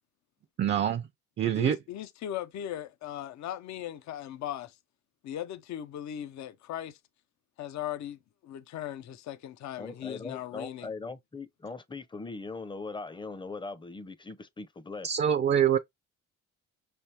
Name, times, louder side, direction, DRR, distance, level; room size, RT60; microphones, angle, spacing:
voice 1, 0.6-1.1 1.4-1.8 15.0-15.8, right 9 dB, 35° right, 0.5 m, -25 dB
voice 2, 1.5-4.8 5.2-7.0 7.6-10.9, left 11 dB, 65° left, 0.6 m, -38 dB
voice 3, 9.8-15.1, left 3 dB, 15° left, 0.6 m, -40 dB
5.3 x 3.4 x 2.8 m
cardioid pair, 90°, 30 cm